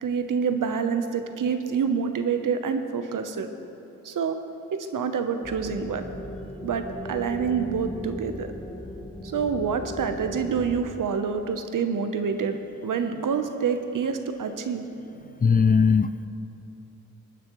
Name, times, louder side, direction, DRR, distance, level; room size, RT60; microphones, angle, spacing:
voice 1, 0.0-3.5 4.0-4.4 4.9-6.0 6.6-8.5 9.3-12.6 12.8-14.9 15.2-15.3, right 6 dB, 70° right, 8 dB, 0.9 m, -27 dB
sound 1, 5.4-10.8, left 1 dB, 10° left, 1.3 m, -38 dB
voice 2, 15.4-16.3, left 5 dB, 25° left, 12 dB, 0.5 m, -19 dB
19.5 x 9.3 x 3.1 m, 3.0 s
supercardioid pair, 45°, 33 cm